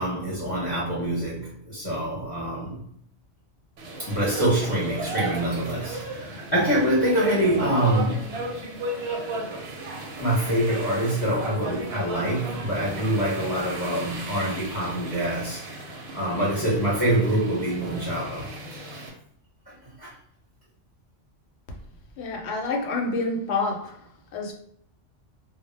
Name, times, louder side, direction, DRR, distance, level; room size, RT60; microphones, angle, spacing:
voice 1, 0.0-2.8 4.0-8.4 10.2-15.6 16.1-18.5 18.9-19.0 19.7-20.1, right 1 dB, 25° left, 0.7 m, -25 dB
sound 1, 3.8-19.1, right 2 dB, 65° right, 0.7 m, -35 dB
voice 2, 22.2-23.9 24.3-24.5, left 3 dB, 70° left, 0.8 m, -27 dB
2.1 x 2.0 x 3.1 m
omnidirectional pair, 1.2 m